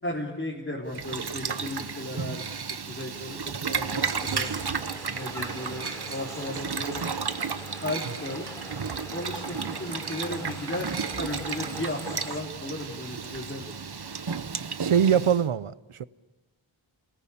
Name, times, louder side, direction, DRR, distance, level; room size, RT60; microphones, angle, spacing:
voice 1, 0.0-4.5 5.0-7.0 7.8-8.5 9.1-10.9 11.2-13.7, left 1 dB, 25° left, 3.8 m, -35 dB
Boiling, 0.9-15.4, right 5 dB, 50° right, 1.1 m, -33 dB
sound 1, 4.0-12.4, equal, 5° left, 3.7 m, -43 dB
voice 2, 14.8-16.0, right 8 dB, 85° right, 0.8 m, -23 dB
29.0 x 18.5 x 8.6 m
wide cardioid pair, 70°, 49 cm